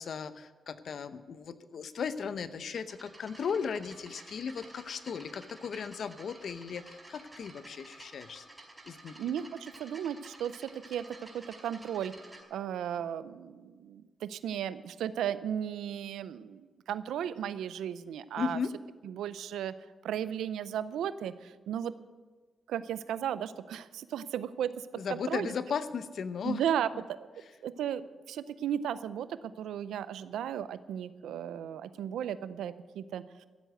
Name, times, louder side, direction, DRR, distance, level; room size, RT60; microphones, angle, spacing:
voice 1, 0.0-8.4 8.9-9.1 18.4-18.7 25.0-26.6, left 6 dB, 70° left, 13 dB, 0.8 m, -36 dB
sound 1, 2.8-12.4, right 2 dB, 20° right, 4.6 m, -52 dB
voice 2, 9.2-18.6 19.0-19.7 20.0-21.9 22.7-25.5 26.4-33.5, right 9 dB, 90° right, 15 dB, 0.5 m, -35 dB
14.5 x 8.1 x 7.9 m, 1.4 s
cardioid pair, 60°, 0 cm